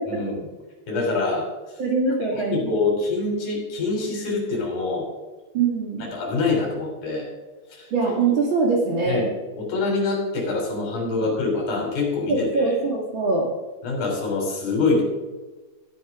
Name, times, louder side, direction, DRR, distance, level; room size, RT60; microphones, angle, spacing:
voice 1, 0.9-1.5 2.3-5.1 6.1-7.3 7.7-7.9 9.1-9.3 9.5-12.7 13.8-15.0, left 3 dB, 45° left, 0 dB, 4.5 m, -25 dB
voice 2, 1.8-2.7 5.5-6.1 7.9-9.2 11.2-11.3 12.3-13.5, right 4 dB, 65° right, -1 dB, 1.2 m, -23 dB
13.0 x 10.5 x 3.6 m, 1.2 s
omnidirectional pair, 5.4 m